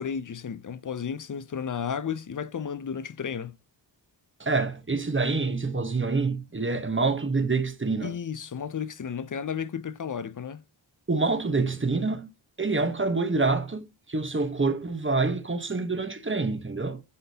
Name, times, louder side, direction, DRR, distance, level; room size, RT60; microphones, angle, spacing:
voice 1, 0.0-3.5 8.0-10.6, left 7 dB, 45° left, 0.6 m, -33 dB
voice 2, 4.4-8.2 11.1-12.3 12.6-17.0, right 3 dB, 25° right, 1.0 m, -26 dB
9.5 x 3.7 x 2.8 m
wide cardioid pair, 75°, 45 cm